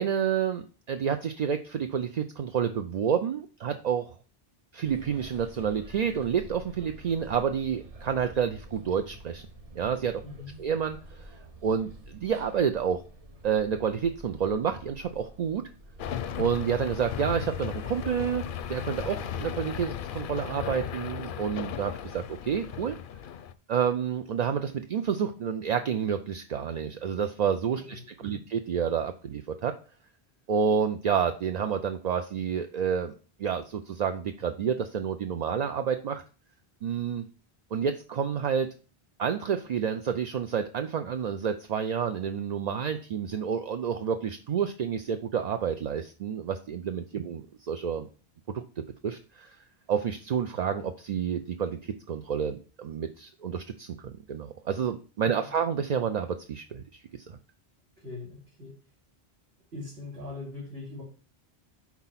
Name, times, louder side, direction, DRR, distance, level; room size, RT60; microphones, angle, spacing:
voice 1, 0.0-4.1 4.7-9.5 9.8-10.2 10.6-13.0 13.4-15.6 16.4-23.0 23.7-29.7 30.5-33.1 33.4-36.2 36.8-37.3 37.7-38.7 39.2-48.1 48.5-49.6 49.9-57.4, right 7 dB, 55° right, 7 dB, 0.5 m, -29 dB
sound 1, 4.8-19.9, right 1 dB, 40° right, 0.9 m, -48 dB
voice 2, 10.2-10.5 27.8-28.4 55.2-55.6 58.0-58.8 59.7-61.0, left 3 dB, 80° right, -6 dB, 2.8 m, -42 dB
sound 2, 16.0-23.5, left 9 dB, 60° left, 0.7 m, -36 dB
6.0 x 4.3 x 5.7 m, 0.37 s
omnidirectional pair, 1.1 m